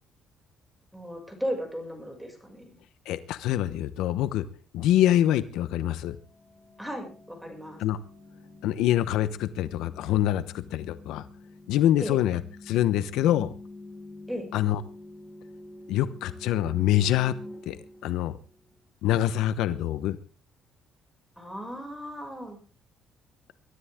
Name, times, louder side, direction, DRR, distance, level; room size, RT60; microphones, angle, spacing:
voice 1, 0.9-2.8 6.8-7.8 12.0-12.2 14.3-14.5 21.4-22.6, equal, ahead, 3 dB, 6.5 m, -36 dB
voice 2, 3.1-4.4 4.7-6.2 7.8-8.0 8.6-11.2 11.7-13.5 14.5-14.8 15.9-17.3 17.7-17.8 18.0-18.4 19.0-20.2, left 12 dB, 85° left, 13 dB, 1.0 m, -25 dB
sound 1, 6.1-18.8, left 1 dB, 15° left, 7.0 m, -47 dB
22.5 x 13.0 x 3.7 m, 0.37 s
cardioid pair, 115°, 0 cm